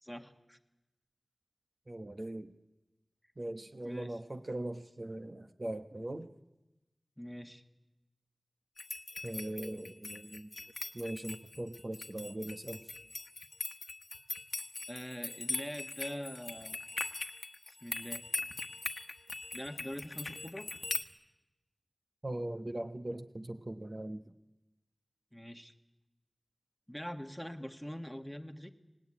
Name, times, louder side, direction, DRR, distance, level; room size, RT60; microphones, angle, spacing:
voice 1, 0.0-0.6 3.8-4.2 7.2-7.6 14.9-16.8 17.7-18.2 19.5-20.7 25.3-25.7 26.9-28.7, equal, 5° left, 7 dB, 1.6 m, -43 dB
voice 2, 1.9-2.5 3.4-6.3 9.2-10.5 10.9-12.8 22.2-24.2, right 1 dB, 40° right, 7 dB, 1.1 m, -40 dB
sound 1, 8.8-21.0, left 3 dB, 65° left, 1.2 m, -41 dB
25.0 x 19.0 x 9.8 m, 1.0 s
wide cardioid pair, 70°, 0 cm